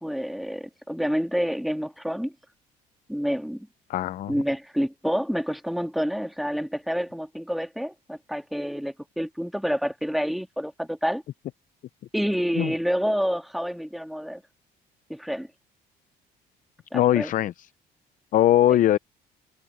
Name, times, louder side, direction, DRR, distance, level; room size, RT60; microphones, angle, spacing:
voice 1, 0.0-2.3 3.1-3.7 4.3-11.2 12.1-14.4 15.1-15.5 16.9-17.3, equal, ahead, 1.9 m, -28 dB
voice 2, 3.9-4.3 12.6-12.7 16.9-17.7 18.3-19.0, left 12 dB, 50° left, 0.5 m, -21 dB
cardioid pair, 110°, 17 cm